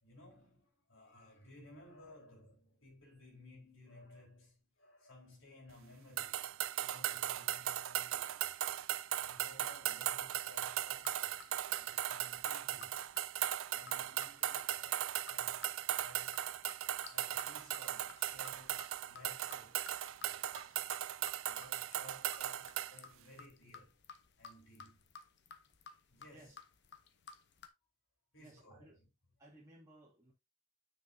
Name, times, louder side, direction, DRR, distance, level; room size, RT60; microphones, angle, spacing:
voice 1, 0.0-8.7 9.2-11.4 11.7-13.0 13.7-16.7 17.0-19.9 20.3-20.8 21.4-24.0 24.4-25.1 26.1-26.6 28.3-29.1, left 1 dB, 75° left, 4.2 m, -59 dB
sound 1, 6.2-23.0, right 12 dB, 85° right, 0.4 m, -38 dB
sound 2, 11.0-27.7, left 5 dB, 60° left, 0.8 m, -56 dB
voice 2, 28.4-28.9 29.4-30.3, right 1 dB, 15° right, 2.4 m, -60 dB
7.2 x 6.3 x 2.7 m
head